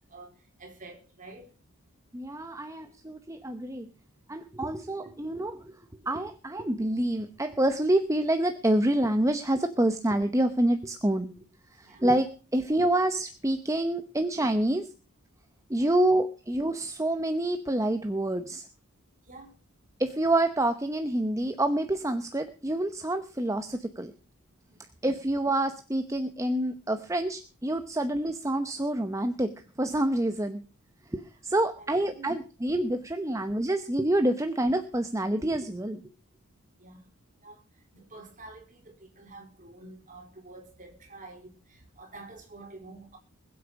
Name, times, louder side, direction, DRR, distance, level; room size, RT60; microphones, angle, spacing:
voice 1, 0.6-1.5 5.0-5.1 11.8-12.1 15.7-16.0 19.3-19.5 24.7-24.8 31.8-32.3 36.8-37.0 37.4-37.6 37.9-43.2, right 2 dB, 35° right, 3.8 m, -48 dB
voice 2, 2.1-3.9 4.3-5.7 6.0-11.3 11.7-14.9 15.7-18.7 20.0-24.1 25.0-29.5 29.8-30.6 31.1-36.0, right 1 dB, 15° right, 0.9 m, -27 dB
21.0 x 8.2 x 6.1 m
head